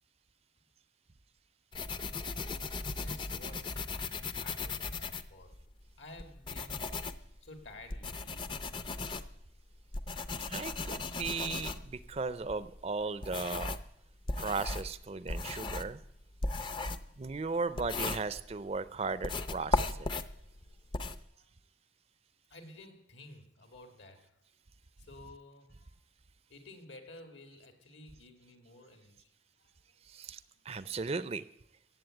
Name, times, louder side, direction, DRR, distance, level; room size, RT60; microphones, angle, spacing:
sound 1, 1.7-5.7 6.2-13.9 14.3-18.8 19.2-21.2, left 3 dB, 25° left, 0.5 m, -37 dB
voice 1, 2.9-5.6 6.0-7.0 7.4-8.5 20.6-20.8 21.3-21.5 22.5-24.4 25.0-26.0 26.5-29.3 29.6-29.8 30.5-30.6, left 2 dB, 75° left, 6 dB, 2.4 m, -53 dB
voice 2, 10.5-13.8 14.4-16.0 17.2-20.1 30.1-30.4 30.7-31.4, right 4 dB, 35° right, 15 dB, 0.5 m, -36 dB
16.0 x 7.7 x 8.9 m, 0.77 s
head